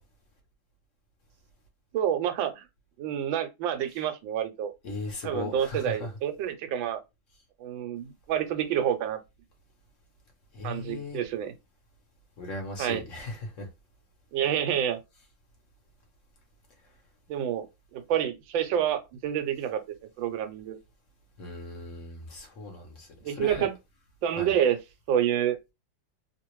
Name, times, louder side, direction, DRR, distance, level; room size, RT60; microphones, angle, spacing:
voice 1, 1.9-2.6 3.0-4.7 5.2-7.0 7.6-9.2 10.6-11.5 12.8-13.0 14.3-15.0 17.3-17.6 17.9-19.8 20.2-20.8 23.2-23.7 24.2-24.8 25.1-25.6, right 9 dB, 80° right, 1.3 m, -28 dB
voice 2, 4.8-6.1 10.5-11.2 12.4-13.7 21.4-23.7 24.4-24.5, left 2 dB, 50° left, 1.1 m, -37 dB
3.2 x 2.4 x 3.0 m
omnidirectional pair, 2.1 m